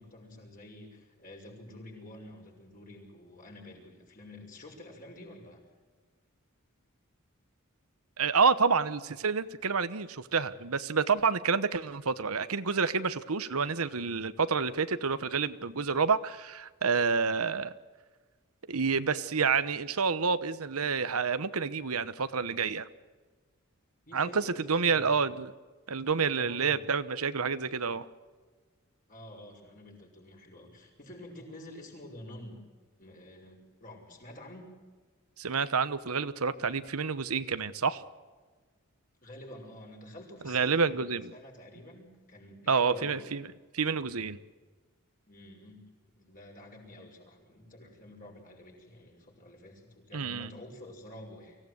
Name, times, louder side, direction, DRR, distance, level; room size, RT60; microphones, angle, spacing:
voice 1, 0.0-5.6 24.1-25.1 26.3-26.8 29.1-32.6 33.0-34.7 39.2-43.2 45.3-45.8 46.1-51.6, left 1 dB, 40° left, 0 dB, 6.2 m, -49 dB
voice 2, 8.2-17.7 18.7-22.9 24.1-25.5 25.9-28.1 35.4-38.0 40.4-41.3 42.7-43.5 43.7-44.4 50.1-50.5, right 5 dB, 90° right, 13 dB, 1.1 m, -28 dB
24.5 x 16.5 x 8.0 m, 1.4 s
head